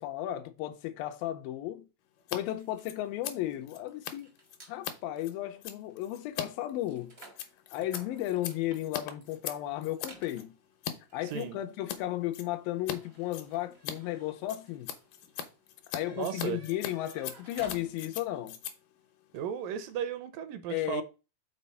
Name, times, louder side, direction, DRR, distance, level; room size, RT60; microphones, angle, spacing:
voice 1, 0.0-1.9 2.3-4.3 4.7-7.1 7.7-10.5 11.1-14.9 15.9-18.6 20.7-21.0, left 14 dB, 90° left, 2.4 m, -34 dB
Scissors, 2.2-2.4 2.6-10.9 11.3-12.0 12.3-13.0 13.2-20.0, left 9 dB, 75° left, 2.4 m, -41 dB
sound 1, 2.4-4.8 5.5-5.6 5.9-18.3, right 2 dB, 60° right, 0.6 m, -56 dB
voice 2, 11.2-11.6 16.1-16.6 19.3-21.0, right 9 dB, 80° right, 2.3 m, -35 dB
6.2 x 4.2 x 5.5 m
omnidirectional pair, 4.1 m